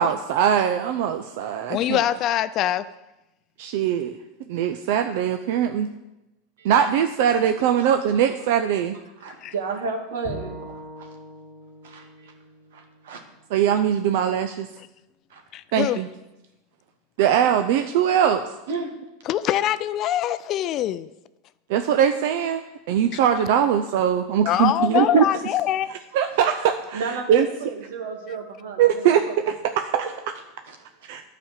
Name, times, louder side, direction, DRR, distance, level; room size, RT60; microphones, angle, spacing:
voice 1, 0.0-2.0 3.6-4.1 4.5-5.9 6.6-9.0 13.5-14.7 15.7-16.1 17.2-18.4 21.7-22.6 22.9-25.2 26.1-27.0 27.3-27.5 28.8-29.2 29.8-30.0 31.0-31.2, right 9 dB, 70° right, 7 dB, 0.6 m, -21 dB
voice 2, 1.7-2.9 9.4-9.5 15.5-16.0 19.3-21.1 24.4-25.9, left 12 dB, 45° left, 14 dB, 0.4 m, -23 dB
voice 3, 9.2-10.6 11.0-11.1 11.8-12.3 12.7-13.2 15.3-15.4 18.7-18.9 24.5-24.6 24.9-25.4 26.9-29.3 29.9-30.1 30.7-30.8 31.0-31.1, right 4 dB, 85° right, 3 dB, 1.8 m, -32 dB
Bowed string instrument, 10.2-13.5, equal, 20° right, 2.6 m, -41 dB
9.8 x 5.1 x 7.4 m, 0.98 s
supercardioid pair, 120°, 0 cm